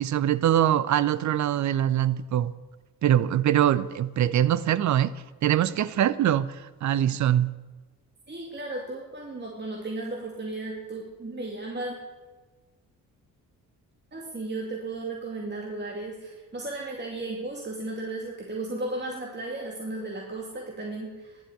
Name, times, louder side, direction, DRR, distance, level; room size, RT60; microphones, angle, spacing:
voice 1, 0.0-2.5 3.0-5.1 5.4-6.6 6.8-7.5, right 11 dB, 35° right, 15 dB, 0.7 m, -23 dB
voice 2, 8.3-12.0 14.1-21.4, right 2 dB, 20° right, 0 dB, 2.3 m, -35 dB
13.0 x 11.5 x 6.6 m, 1.2 s
figure-of-eight pair, 40°, 48 cm